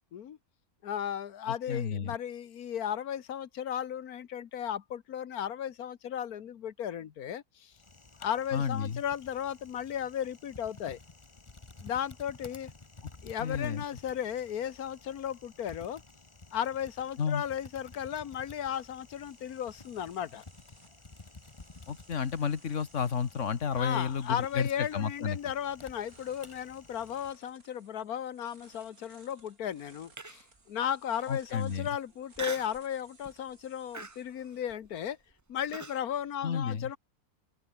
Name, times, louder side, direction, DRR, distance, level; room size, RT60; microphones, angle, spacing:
voice 1, 0.8-7.7 8.2-11.0 11.8-12.7 13.2-16.0 16.5-20.4 23.8-35.2 35.5-37.0, left 9 dB, 90° left, 1.6 m, -35 dB
voice 2, 1.5-2.2 8.5-9.0 13.4-13.8 17.2-17.4 21.9-25.4 31.3-31.9 36.4-36.9, left 6 dB, 60° left, 1.7 m, -31 dB
Typing, 7.7-27.3, left 3 dB, 20° left, 1.4 m, -53 dB
sound 1, 18.2-35.3, right 3 dB, 80° right, 4.2 m, -63 dB
Human voice, 30.2-30.6 31.1-31.2 32.3-32.8 33.2-33.5 33.9-36.0, right 3 dB, 20° right, 0.6 m, -41 dB
omnidirectional pair, 1.5 m